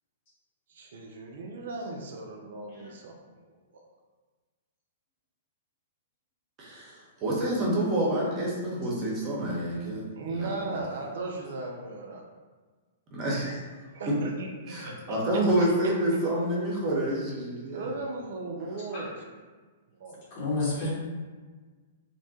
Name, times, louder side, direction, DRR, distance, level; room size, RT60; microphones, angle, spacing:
voice 1, 0.7-3.1 3.7-3.9 10.2-12.2 13.9-15.4 17.7-19.1 19.9-20.2, right 3 dB, 55° right, 1 dB, 0.3 m, -37 dB
voice 2, 6.6-10.8 13.1-14.1 14.7-17.9, right 1 dB, 30° right, -4 dB, 0.7 m, -28 dB
voice 3, 20.3-20.9, left 2 dB, 40° left, -6 dB, 1.0 m, -30 dB
2.6 x 2.1 x 2.7 m, 1.4 s
figure-of-eight pair, 110°, 0 cm